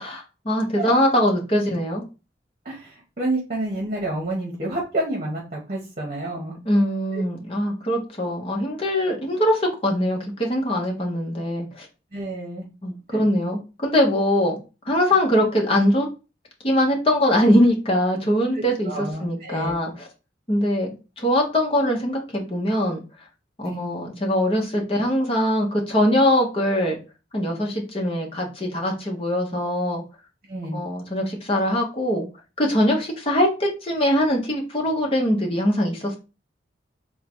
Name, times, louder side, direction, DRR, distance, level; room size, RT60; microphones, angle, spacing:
voice 1, 0.0-2.0 6.6-11.9 12.8-14.6 14.9-16.1 16.6-20.1 20.5-20.9 21.2-23.0 23.6-27.0 27.3-30.0 30.7-32.3 32.6-36.2, equal, 30° left, 0 dB, 0.9 m, -22 dB
voice 2, 2.6-6.6 7.1-7.2 12.1-12.7 13.1-13.2 18.5-19.9 23.6-23.9 30.5-30.8, right 1 dB, 40° right, -1 dB, 0.9 m, -29 dB
3.7 x 2.2 x 4.4 m, 0.31 s
head